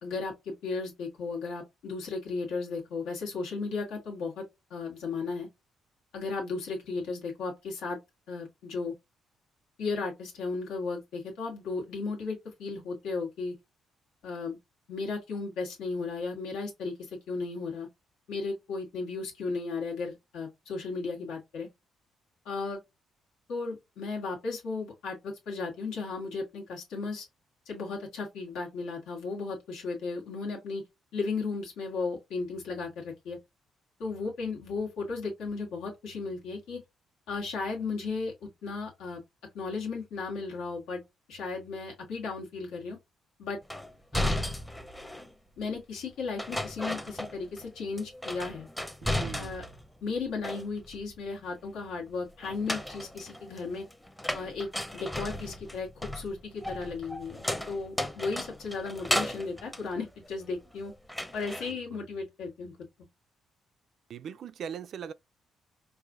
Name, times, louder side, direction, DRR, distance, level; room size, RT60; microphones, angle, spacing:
voice 1, 0.0-4.4 4.7-5.5 6.1-8.0 8.3-8.9 9.8-13.5 14.2-14.6 14.9-17.9 18.3-21.7 22.4-22.8 23.5-27.2 27.6-30.8 31.1-33.4 34.0-36.8 37.3-38.3 38.6-39.2 39.5-41.0 41.3-43.0 43.4-43.6 44.1-44.3 45.6-48.7 49.3-49.6 50.0-53.8 54.3-60.9 61.3-62.7, left 4 dB, 90° left, 1.6 m, -35 dB
sound 1, 43.7-45.3 46.4-47.7 48.0-49.8 50.2-51.0 52.4-60.7 61.1-61.7, left 1 dB, 10° left, 0.6 m, -35 dB
voice 2, 49.0-49.6 61.7-62.0 64.1-65.1, right 7 dB, 65° right, 0.3 m, -41 dB
4.7 x 2.5 x 2.4 m
cardioid pair, 90°, 0 cm